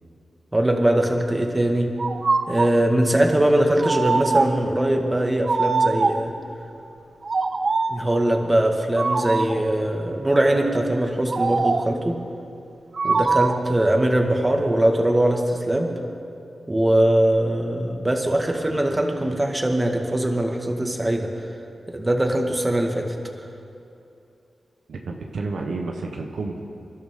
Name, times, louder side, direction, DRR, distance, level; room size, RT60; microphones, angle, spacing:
voice 1, 0.5-1.9 2.5-6.3 7.9-12.2 13.0-15.9 16.7-21.3 21.9-23.1, right 1 dB, 25° right, 2 dB, 1.9 m, -21 dB
sound 1, 2.0-2.8 3.8-4.7 5.5-6.4 7.2-8.1 9.0-9.7 11.3-12.0 13.0-13.7, right 4 dB, 55° right, 0.6 m, -23 dB
voice 2, 24.9-26.6, right 3 dB, 80° right, 2 dB, 1.2 m, -30 dB
25.0 x 12.0 x 3.9 m, 2.7 s
cardioid pair, 55°, 0 cm